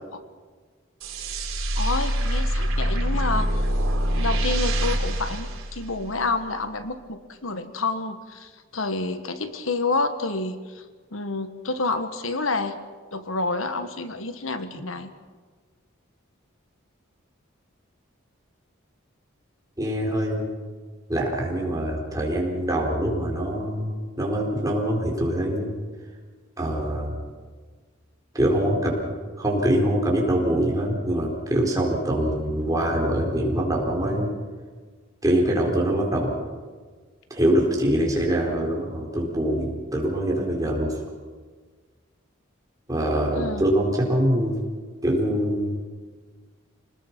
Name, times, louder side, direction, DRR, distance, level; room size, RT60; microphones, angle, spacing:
sound 1, 1.0-6.3, right 1 dB, 85° right, 3.2 m, -25 dB
voice 1, 1.7-3.6 4.1-10.8 11.1-12.8 13.1-15.1 43.3-43.6, left 3 dB, 80° left, 9 dB, 1.4 m, -29 dB
voice 2, 19.8-20.5 21.1-23.9 24.2-25.7 26.6-27.1 28.3-29.1 29.4-34.3 35.2-36.4 37.3-41.0 42.9-44.6 45.0-45.8, right 1 dB, 15° right, -1 dB, 4.3 m, -24 dB
27.0 x 19.5 x 6.0 m, 1.5 s
head